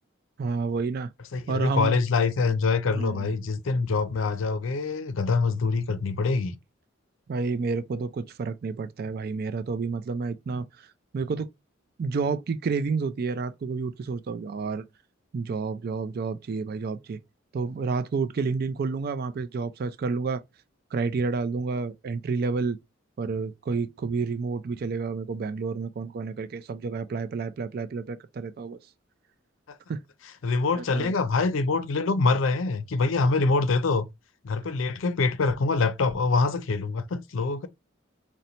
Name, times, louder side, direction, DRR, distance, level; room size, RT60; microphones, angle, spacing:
voice 1, 0.4-1.1 1.5-2.0 2.9-3.3 7.3-10.9 11.1-11.5 12.0-14.8 15.3-17.2 17.5-20.4 20.9-22.8 23.2-28.8 29.9-30.0 30.7-31.1, right 4 dB, 50° right, 0.4 m, -30 dB
voice 2, 1.3-6.6 29.7-29.8 30.4-34.0 34.4-37.7, left 4 dB, 80° left, 0.5 m, -25 dB
3.9 x 2.1 x 4.2 m
head